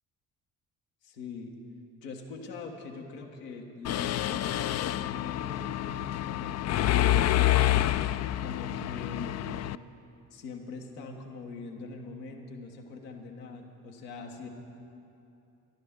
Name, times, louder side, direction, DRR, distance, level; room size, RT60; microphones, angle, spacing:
voice 1, 1.0-1.5 2.0-7.5 8.4-9.4 10.3-14.5, left 4 dB, 85° left, 2 dB, 1.4 m, -43 dB
Mechanisms, 3.8-9.8, left 13 dB, 35° left, 0.4 m, -28 dB
23.0 x 12.0 x 3.6 m, 2.8 s
hypercardioid pair, 50°, 46 cm